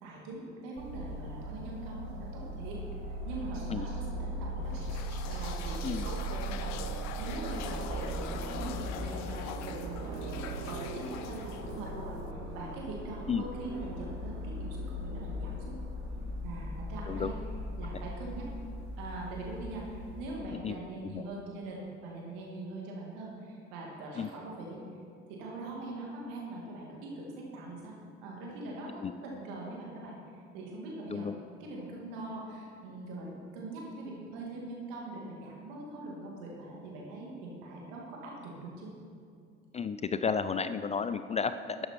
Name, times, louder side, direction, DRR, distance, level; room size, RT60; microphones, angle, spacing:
voice 1, 0.0-2.8 3.1-4.9 5.3-6.8 7.2-12.2 12.5-15.7 16.4-17.4 17.8-18.5 19.0-24.8 25.3-27.9 28.2-30.2 30.5-31.3 31.6-38.9, right 2 dB, 65° right, -3 dB, 2.5 m, -42 dB
sound 1, 0.8-20.4, right 1 dB, 50° right, 1.8 m, -38 dB
sound 2, 4.7-12.3, left 9 dB, 50° left, 0.7 m, -44 dB
voice 2, 39.7-41.9, left 6 dB, 20° left, 11 dB, 0.3 m, -32 dB
12.0 x 8.7 x 4.5 m, 2.3 s
figure-of-eight pair, 60°, 36 cm